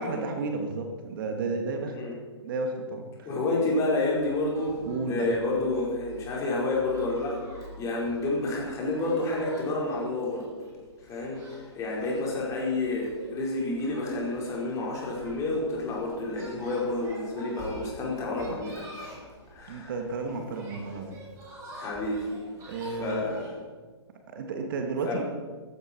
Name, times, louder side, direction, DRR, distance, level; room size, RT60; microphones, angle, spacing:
voice 1, 0.0-2.0 2.4-3.3 4.8-5.3 19.7-21.2 22.7-23.4 24.3-25.2, right 3 dB, 50° right, 4 dB, 2.0 m, -32 dB
voice 2, 3.2-4.8 5.1-10.5 11.0-19.9 21.7-22.3 22.6-23.6 25.0-25.2, left 2 dB, 20° left, -3 dB, 4.9 m, -30 dB
sound 1, 4.1-23.5, equal, 20° right, 6.3 m, -47 dB
16.5 x 14.5 x 4.6 m, 1.4 s
figure-of-eight pair, 125°, 15 cm